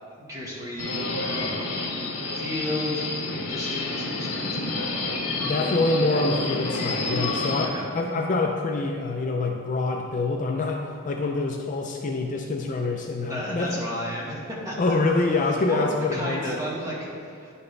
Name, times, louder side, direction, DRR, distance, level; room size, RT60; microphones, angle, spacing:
voice 1, 0.2-1.5 1.8-5.1 7.7-7.8 13.3-14.9 15.7-17.5, equal, 15° right, -6 dB, 1.5 m, -33 dB
Subway metro underground, 0.8-7.6, left 2 dB, 80° left, 1.2 m, -29 dB
voice 2, 5.4-13.8 14.8-16.5, left 3 dB, 35° left, 2 dB, 0.3 m, -26 dB
10.5 x 4.1 x 3.2 m, 2.5 s
head